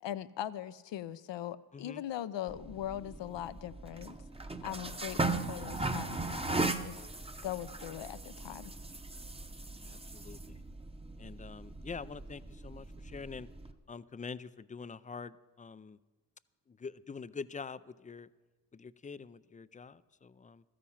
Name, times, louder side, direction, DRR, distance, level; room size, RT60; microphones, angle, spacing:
voice 1, 0.0-4.2 4.6-6.9 7.4-8.7, left 11 dB, 70° left, 15 dB, 0.6 m, -40 dB
sound 1, 2.5-13.7, right 3 dB, 15° right, 0.8 m, -38 dB
voice 2, 9.8-10.6 11.2-13.5 13.9-16.0 16.7-18.3 18.7-20.6, left 5 dB, 20° left, 17 dB, 0.3 m, -45 dB
13.0 x 10.0 x 5.7 m, 1.3 s
cardioid pair, 50°, 44 cm